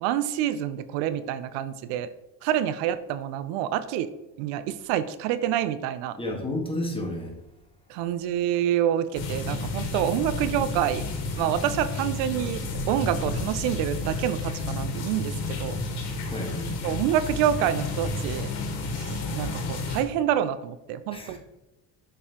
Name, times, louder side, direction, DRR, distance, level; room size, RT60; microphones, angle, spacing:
voice 1, 0.0-2.1 2.4-4.1 4.4-6.2 7.9-11.1 11.4-15.8 16.8-18.5 19.0-21.4, right 11 dB, 80° right, 13 dB, 0.6 m, -27 dB
voice 2, 6.2-7.3 16.3-16.7 21.1-21.4, left 1 dB, 10° left, 1 dB, 1.5 m, -31 dB
sound 1, 9.1-20.0, left 2 dB, 80° left, 1.5 m, -31 dB
6.5 x 5.4 x 2.9 m, 0.97 s
supercardioid pair, 90°, 43 cm